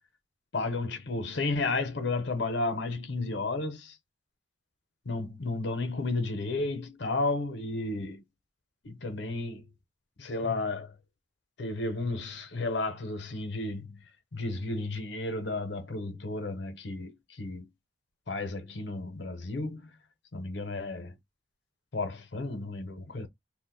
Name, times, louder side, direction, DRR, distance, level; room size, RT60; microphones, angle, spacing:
voice 1, 0.5-4.0 5.1-8.2 8.8-9.7 10.2-10.9 11.6-17.7 18.3-19.9 20.3-21.2 21.9-23.3, left 2 dB, 55° left, 0.7 m, -33 dB
2.4 x 2.1 x 3.7 m
head